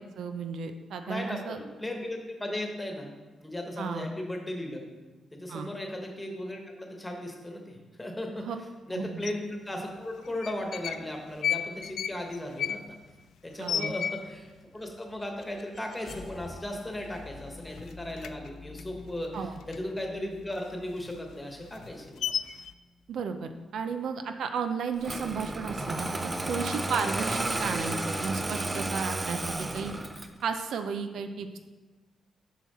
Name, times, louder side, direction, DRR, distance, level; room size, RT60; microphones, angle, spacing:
voice 1, 0.2-1.6 3.8-4.1 5.5-5.7 8.4-8.6 8.9-9.2 13.6-13.9 19.3-19.5 23.1-29.9 30.4-31.6, right 5 dB, 75° right, 7 dB, 0.5 m, -34 dB
voice 2, 1.0-3.1 3.4-4.8 5.3-8.5 8.9-12.8 13.4-22.2, left 1 dB, 10° left, 2 dB, 1.3 m, -36 dB
sound 1, 9.2-9.3 10.2-11.0 11.3-14.6 14.9-15.0 15.2-15.8 16.2-16.3 16.6-17.4 17.7-20.1 20.4-22.7, left 9 dB, 80° left, 0.3 m, -34 dB
sound 2, 14.6-23.5, left 3 dB, 50° left, 0.9 m, -49 dB
Engine starting, 25.0-30.4, right 2 dB, 20° right, 0.5 m, -32 dB
7.2 x 6.0 x 4.2 m, 1.2 s
cardioid pair, 120°, 0 cm